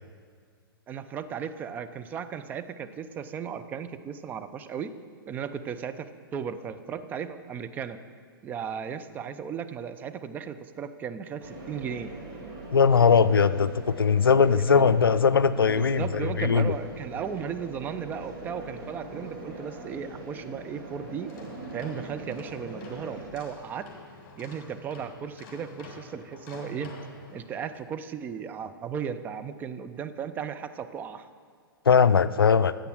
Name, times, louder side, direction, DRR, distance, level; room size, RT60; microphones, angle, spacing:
voice 1, 0.9-4.9 5.3-8.0 8.4-12.1 14.5-14.9 15.6-21.3 21.7-23.9 24.4-26.9 27.3-31.3, right 7 dB, 15° right, 9 dB, 0.4 m, -36 dB
sound 1, 11.4-23.3, right 2 dB, 30° right, 2.0 m, -42 dB
voice 2, 12.7-16.7 31.9-32.8, left 6 dB, 70° left, 15 dB, 0.4 m, -20 dB
sound 2, 21.2-27.8, left 1 dB, 35° left, 2.0 m, -47 dB
9.8 x 8.0 x 6.3 m, 2.1 s
figure-of-eight pair, 110°, 12 cm